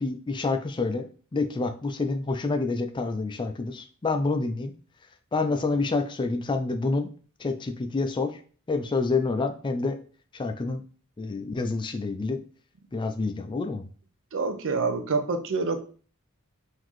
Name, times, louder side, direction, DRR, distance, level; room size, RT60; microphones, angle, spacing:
voice 1, 0.0-4.7 5.3-7.1 7.4-8.4 8.7-10.0 10.3-10.8 11.2-12.4 12.9-13.9, left 3 dB, 20° left, 7 dB, 0.3 m, -28 dB
voice 2, 14.3-15.8, right 4 dB, 60° right, 9 dB, 0.5 m, -27 dB
3.9 x 2.7 x 3.1 m, 0.40 s
head